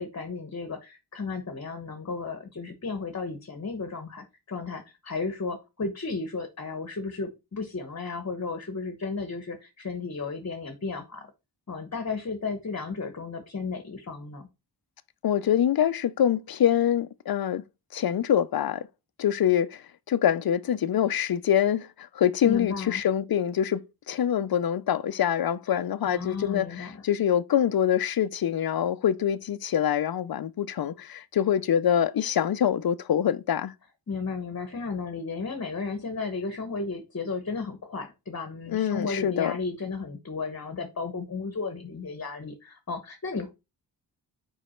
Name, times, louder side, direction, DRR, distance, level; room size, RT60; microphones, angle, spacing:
voice 1, 0.0-11.3 11.7-14.5 22.4-23.0 26.0-27.0 34.1-43.5, left 4 dB, 35° left, 1.1 m, -34 dB
voice 2, 15.2-17.6 17.9-18.9 19.2-33.7 38.7-39.5, left 9 dB, 55° left, 0.6 m, -25 dB
5.1 x 4.8 x 4.3 m
wide cardioid pair, 100°, 43 cm